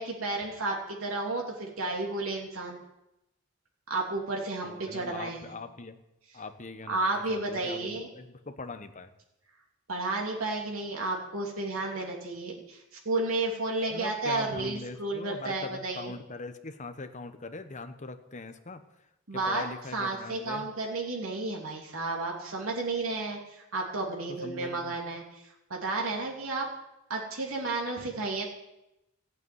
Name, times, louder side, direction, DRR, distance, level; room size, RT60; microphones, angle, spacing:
voice 1, 0.0-2.8 3.9-5.5 6.9-8.1 9.9-16.1 19.3-19.6 19.9-25.2 25.7-26.7 27.1-28.5, right 2 dB, 85° right, -1 dB, 3.0 m, -32 dB
voice 2, 4.6-6.0 6.3-9.1 13.9-18.8 19.3-20.7 24.3-24.9, left 3 dB, 35° left, 9 dB, 1.1 m, -41 dB
15.0 x 8.4 x 9.6 m, 0.90 s
head